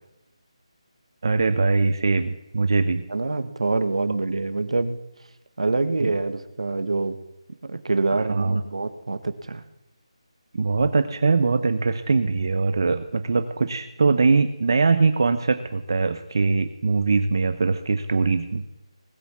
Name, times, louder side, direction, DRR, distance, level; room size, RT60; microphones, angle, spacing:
voice 1, 1.2-3.0 6.0-6.1 8.1-8.6 10.5-18.6, right 4 dB, 40° right, 10 dB, 0.8 m, -22 dB
voice 2, 3.1-5.0 5.6-7.2 7.6-9.6, right 3 dB, 70° right, 11 dB, 1.6 m, -25 dB
19.0 x 8.5 x 7.4 m, 0.94 s
figure-of-eight pair, 175°, 3 cm